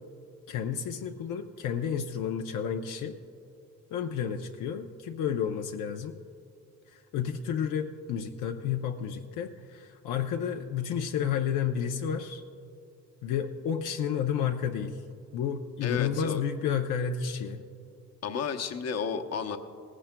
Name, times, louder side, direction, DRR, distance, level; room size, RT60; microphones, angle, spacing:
voice 1, 0.5-3.2 3.9-6.2 6.9-12.4 13.2-15.0 15.3-17.6, left 8 dB, 80° left, 3 dB, 0.7 m, -31 dB
voice 2, 15.8-16.4 18.2-19.6, left 6 dB, 55° left, 5 dB, 0.9 m, -32 dB
18.5 x 16.0 x 2.2 m, 2.5 s
cardioid pair, 90°, 30 cm